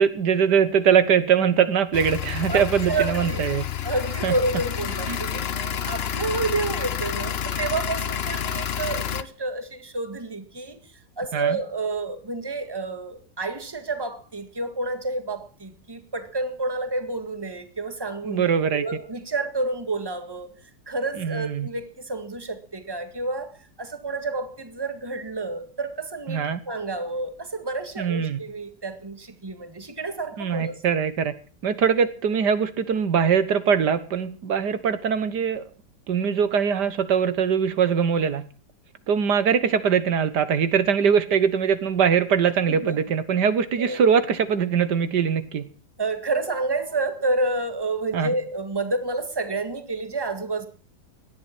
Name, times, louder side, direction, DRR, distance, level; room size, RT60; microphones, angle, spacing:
voice 1, 0.0-3.6 4.2-4.3 5.1-5.2 11.3-11.6 18.3-18.8 21.2-21.7 26.3-26.6 28.0-28.4 30.4-31.3 31.6-35.6 36.1-38.4 39.1-45.6 48.1-48.3, right 7 dB, 80° right, 12 dB, 1.8 m, -22 dB
sound 1, 1.9-9.2, left 9 dB, 45° left, 0.9 m, -29 dB
voice 2, 2.5-3.5 3.8-10.8 11.2-20.5 20.9-23.5 23.8-30.8 42.7-43.0 43.8-44.1 46.0-50.7, right 3 dB, 15° right, 8 dB, 1.8 m, -29 dB
18.0 x 12.0 x 6.0 m, 0.39 s
omnidirectional pair, 1.8 m